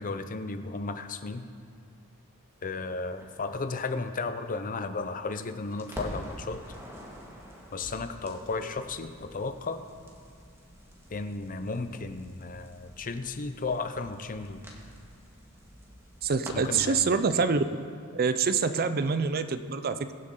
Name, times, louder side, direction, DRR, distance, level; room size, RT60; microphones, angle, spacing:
voice 1, 0.0-1.5 2.6-6.8 7.7-9.9 11.1-14.6 16.5-17.1, left 3 dB, 40° left, 9 dB, 0.6 m, -34 dB
Crackle, 3.2-5.3 5.7-17.0, equal, 10° right, 1.8 m, -47 dB
voice 2, 16.2-17.6 18.1-20.1, right 5 dB, 45° right, 11 dB, 0.5 m, -26 dB
23.0 x 7.8 x 3.8 m, 2.3 s
head